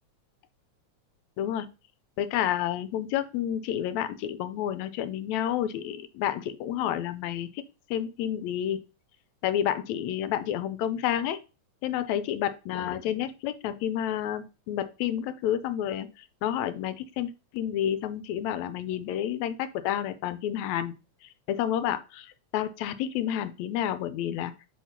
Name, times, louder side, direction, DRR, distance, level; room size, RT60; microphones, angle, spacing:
voice 1, 1.4-1.7 2.2-7.6 7.9-8.8 9.4-11.4 11.8-16.1 16.4-20.9 21.5-24.5, left 10 dB, 80° left, 12 dB, 1.9 m, -30 dB
4.7 x 4.4 x 5.6 m, 0.31 s
omnidirectional pair, 3.4 m